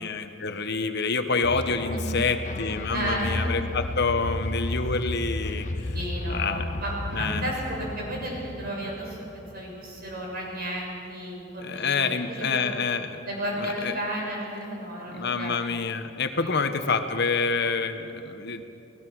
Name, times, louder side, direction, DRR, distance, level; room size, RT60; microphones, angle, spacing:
voice 1, 0.0-5.9 6.3-6.7 7.1-7.5 11.6-13.2 13.6-13.9 15.1-18.6, left 4 dB, 60° left, 8 dB, 1.2 m, -27 dB
sound 1, 1.4-10.5, left 2 dB, 40° left, 0.8 m, -33 dB
voice 2, 2.9-3.5 5.9-12.7 13.2-15.6 16.4-16.5, right 1 dB, 50° right, -2 dB, 6.5 m, -33 dB
29.0 x 18.5 x 6.2 m, 2.9 s
head